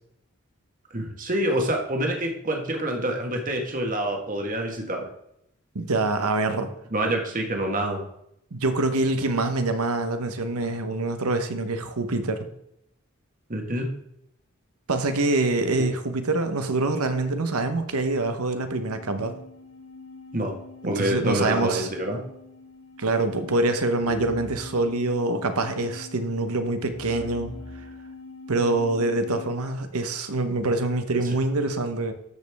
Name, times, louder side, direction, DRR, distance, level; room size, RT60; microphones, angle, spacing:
voice 1, 0.9-5.1 6.9-8.0 13.5-13.9 20.3-20.5 20.8-22.2 31.2-31.3, right 1 dB, 40° right, 1.4 m, -27 dB
voice 2, 5.7-6.7 8.5-12.5 14.9-19.3 20.8-21.9 23.0-27.5 28.5-32.1, right 2 dB, 90° right, 1.0 m, -25 dB
sound 1, 18.4-29.6, left 2 dB, 75° left, 3.4 m, -42 dB
13.0 x 5.2 x 3.5 m
head